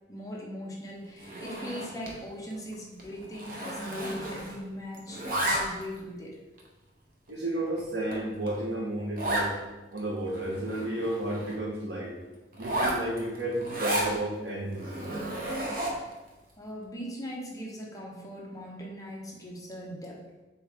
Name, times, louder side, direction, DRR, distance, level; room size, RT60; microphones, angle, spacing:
voice 1, 0.1-6.4 16.6-20.2, equal, 20° left, -2 dB, 0.9 m, -40 dB
Zipper (clothing), 1.2-2.2 2.5-2.7 3.0-4.7 4.9-6.0 6.6-6.7 7.3-7.4 7.8-7.9 8.1-8.2 8.5-8.6 9.2-9.5 10.0-10.1 10.3-11.6 12.5-14.1 14.7-16.1, right 1 dB, 50° right, 1.0 m, -32 dB
voice 2, 7.3-9.5 9.9-12.1 12.6-14.9, right 1 dB, 70° right, -2 dB, 1.4 m, -32 dB
6.9 x 3.7 x 3.6 m, 1.1 s
head